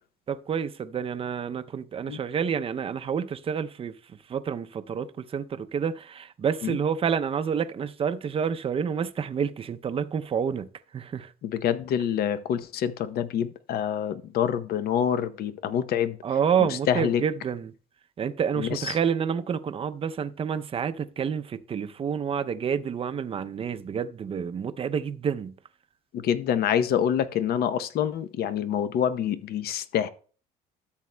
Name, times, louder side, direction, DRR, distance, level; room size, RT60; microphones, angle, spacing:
voice 1, 0.3-3.9 4.3-10.7 10.9-11.3 16.2-17.7 18.2-25.5, right 7 dB, 35° right, 0.5 m, -28 dB
voice 2, 11.4-16.2 16.9-17.2 18.6-19.0 26.1-30.1, left 9 dB, 65° left, 0.7 m, -26 dB
13.0 x 7.2 x 2.2 m
cardioid pair, 110°, 17 cm